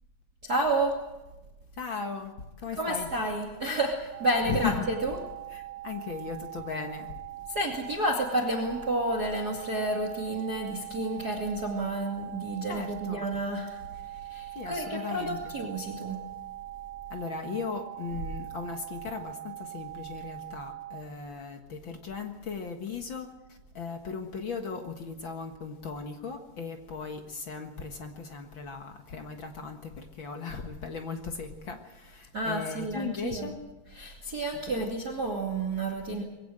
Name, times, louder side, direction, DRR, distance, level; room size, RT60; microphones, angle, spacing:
voice 1, 0.4-0.9 2.8-5.2 7.5-13.8 14.3-16.2 32.3-33.5 33.9-36.2, right 1 dB, 30° right, 0 dB, 2.3 m, -30 dB
voice 2, 1.7-3.1 4.5-4.9 5.5-7.2 12.7-13.3 14.5-15.5 17.1-33.6 34.8-34.9, left 5 dB, 55° left, 4 dB, 1.4 m, -37 dB
sound 1, 4.1-21.0, right 15 dB, 65° right, 3.5 m, -42 dB
22.0 x 16.5 x 8.0 m, 1.0 s
omnidirectional pair, 4.4 m